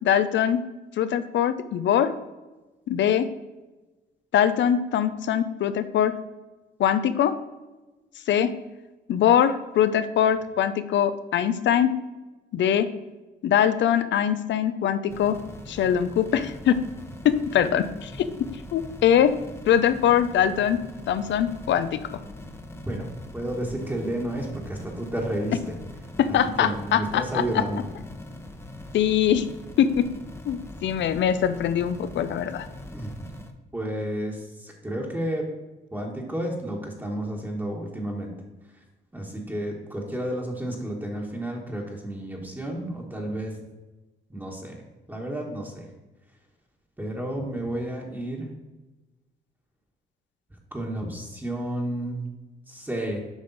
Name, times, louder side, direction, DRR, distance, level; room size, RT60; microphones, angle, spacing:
voice 1, 0.0-0.6 1.0-2.1 2.9-3.3 4.3-6.1 6.8-7.3 8.3-8.5 9.1-11.9 12.5-12.9 13.4-15.4 15.7-16.8 17.2-19.3 19.7-20.8 21.1-22.0 26.2-27.4 28.9-29.5 29.8-30.1 30.5-32.6, left 9 dB, 65° left, 12 dB, 0.6 m, -22 dB
sound 1, 15.1-33.5, left 1 dB, 10° left, 0.9 m, -42 dB
voice 2, 22.8-25.8 26.3-27.8 32.9-33.3 33.7-35.5 35.9-38.3 38.7-38.8 39.1-43.6 44.3-44.8 45.1-45.9 47.0-48.5 50.7-52.2 52.7-53.2, right 1 dB, 10° right, -2 dB, 1.4 m, -31 dB
8.1 x 5.2 x 4.1 m, 1.1 s
cardioid pair, 90°, 20 cm